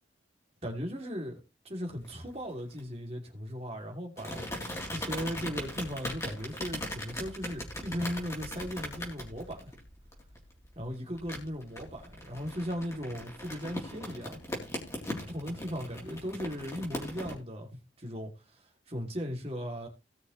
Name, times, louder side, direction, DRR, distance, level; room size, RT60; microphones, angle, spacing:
voice 1, 0.6-4.4 4.9-9.7 10.7-14.4 15.0-19.9, equal, 35° right, 2.8 m, -37 dB
sound 1, 2.0-2.8 4.2-17.3, left 1 dB, 15° left, 3.4 m, -40 dB
18.0 x 6.3 x 3.2 m
head